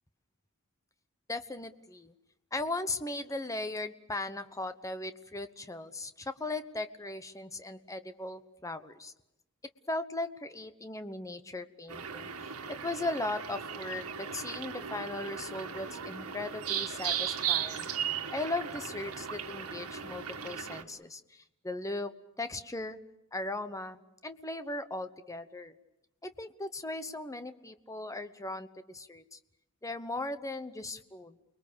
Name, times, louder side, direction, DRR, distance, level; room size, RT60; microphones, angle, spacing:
voice 1, 1.3-2.1 2.5-9.1 9.9-12.3 12.8-17.9 18.3-22.1 22.4-23.0 23.3-25.7 26.2-29.4 29.8-31.4, left 2 dB, 15° left, 10 dB, 1.0 m, -38 dB
sound 1, 11.9-20.8, right 8 dB, 90° right, 1.7 m, -37 dB
29.0 x 22.0 x 7.0 m, 0.89 s
head